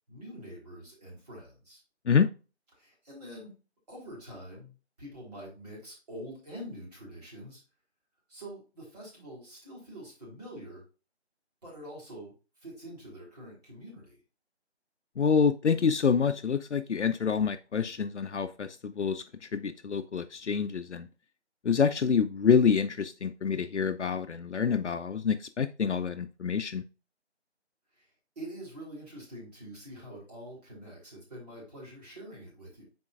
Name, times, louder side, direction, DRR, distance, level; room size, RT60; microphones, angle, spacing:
voice 1, 0.1-1.8 2.8-3.5 3.9-7.6 8.3-10.8 11.6-14.2 27.9-28.1 28.4-32.8, equal, 35° right, -3 dB, 3.5 m, -45 dB
voice 2, 15.2-21.1 21.6-26.8, left 6 dB, 85° left, 8 dB, 0.6 m, -27 dB
9.5 x 4.4 x 2.4 m, 0.33 s
figure-of-eight pair, 165°, 34 cm